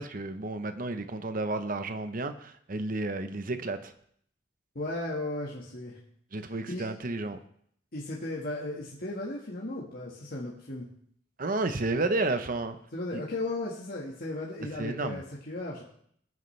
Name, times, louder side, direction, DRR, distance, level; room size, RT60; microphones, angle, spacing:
voice 1, 0.0-3.9 6.3-7.4 11.4-12.8 13.1-13.2 14.7-15.2, right 2 dB, 45° right, 9 dB, 0.9 m, -31 dB
voice 2, 4.7-6.0 6.5-6.9 7.9-10.9 12.9-15.8, left 2 dB, 50° left, -4 dB, 1.7 m, -36 dB
19.5 x 9.4 x 3.3 m, 0.66 s
head